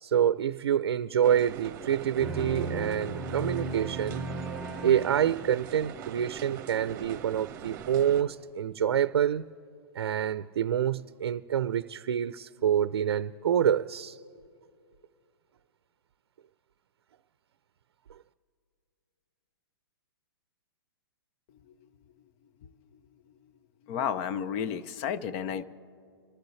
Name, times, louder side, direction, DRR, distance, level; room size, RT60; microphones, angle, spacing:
voice 1, 0.0-4.2 4.8-9.4 9.9-14.2, right 9 dB, 75° right, 0.5 m, -27 dB
sound 1, 1.2-8.2, right 8 dB, 25° right, 1.4 m, -42 dB
sound 2, 2.2-6.0, right 2 dB, 5° right, 0.7 m, -36 dB
voice 2, 23.9-25.6, left 8 dB, 35° left, 0.6 m, -32 dB
28.0 x 12.0 x 3.2 m
hypercardioid pair, 150°, 13 cm